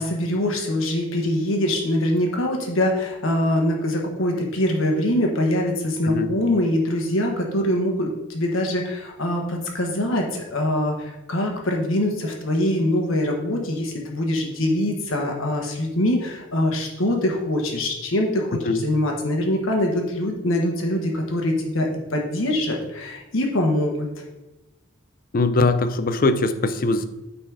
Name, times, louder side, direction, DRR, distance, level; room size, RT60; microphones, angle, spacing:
voice 1, 0.0-24.1, left 1 dB, 70° left, 1 dB, 1.4 m, -23 dB
voice 2, 25.3-27.0, left 3 dB, 45° left, 12 dB, 0.5 m, -21 dB
9.0 x 4.3 x 4.8 m, 1.0 s
head